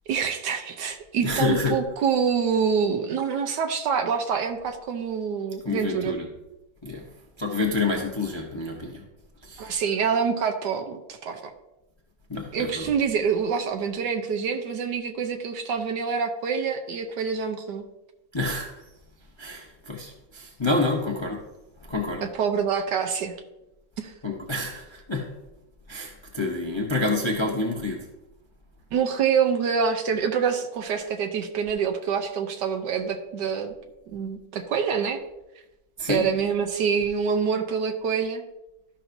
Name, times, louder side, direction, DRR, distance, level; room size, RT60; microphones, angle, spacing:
voice 1, 0.1-6.2 9.6-11.5 12.5-17.8 22.2-23.3 24.0-24.1 28.9-33.7 34.1-35.2 36.1-38.4, right 6 dB, 70° right, 5 dB, 1.2 m, -26 dB
voice 2, 1.2-1.8 5.6-6.3 6.8-7.1 7.4-9.0 9.4-9.7 12.3-12.9 18.3-18.7 19.4-21.4 21.9-22.3 24.2-25.3 25.9-28.0 36.0-36.3, left 3 dB, 25° left, -1 dB, 0.6 m, -28 dB
13.0 x 5.7 x 2.6 m, 0.96 s
omnidirectional pair, 2.1 m